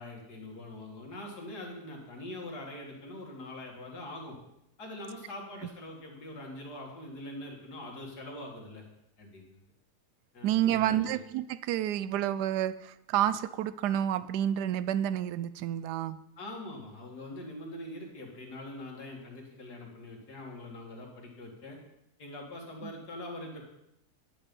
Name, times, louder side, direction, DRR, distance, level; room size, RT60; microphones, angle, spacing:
voice 1, 0.0-4.4 4.8-8.8 9.2-9.6 10.3-11.2 16.4-21.8 22.2-23.7, left 1 dB, 80° left, 0 dB, 2.7 m, -43 dB
voice 2, 10.4-16.2 22.8-22.9, right 11 dB, 85° right, 15 dB, 1.1 m, -29 dB
10.0 x 8.8 x 5.3 m, 0.82 s
omnidirectional pair, 1.7 m